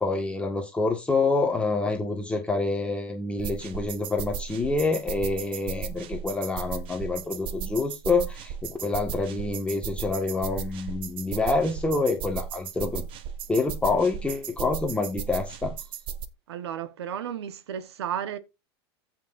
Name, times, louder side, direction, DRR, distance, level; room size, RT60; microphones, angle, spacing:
voice 1, 0.0-13.0 13.5-15.7, left 3 dB, 10° left, 1.7 m, -27 dB
sound 1, 3.4-16.3, right 7 dB, 40° right, 1.2 m, -36 dB
voice 2, 16.5-18.4, right 9 dB, 85° right, 1.2 m, -33 dB
15.0 x 6.0 x 2.6 m
supercardioid pair, 120°, 13 cm